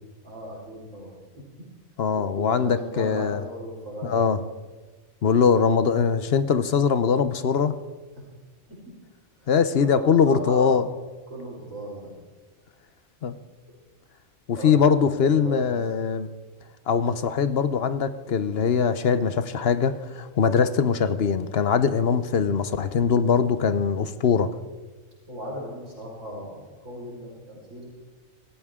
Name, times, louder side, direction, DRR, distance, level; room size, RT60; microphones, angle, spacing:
voice 1, 0.2-1.4 2.2-4.3 8.2-8.3 8.7-8.9 9.4-10.8 11.3-12.2 14.6-15.7 25.3-27.9, equal, 65° right, 4.9 m, -37 dB
voice 2, 2.0-3.4 4.0-4.4 5.2-7.8 9.5-10.9 13.2-13.4 14.5-16.3 16.9-24.6, left 6 dB, 55° left, 0.9 m, -22 dB
25.5 x 14.5 x 3.7 m
omnidirectional pair, 1.4 m